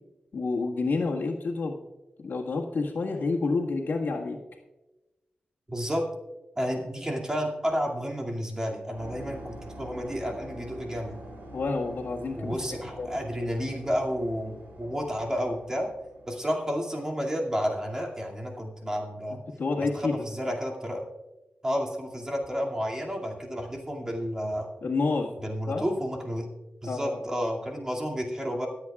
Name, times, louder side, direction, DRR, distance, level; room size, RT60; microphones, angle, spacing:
voice 1, 0.3-1.8 2.2-4.4 11.5-12.6 13.0-13.2 19.6-20.2 24.8-25.3 25.7-25.8 26.8-27.2, left 3 dB, 85° left, -2 dB, 1.7 m, -29 dB
voice 2, 5.7-6.1 6.6-11.2 12.4-15.9 16.3-19.4 19.8-21.0 21.6-24.7 25.4-26.5 26.8-28.7, equal, 20° right, -1 dB, 2.4 m, -31 dB
sound 1, 9.0-16.6, right 1 dB, 85° right, 3.8 m, -45 dB
24.5 x 8.4 x 2.4 m, 1.0 s
wide cardioid pair, 85°, 3 cm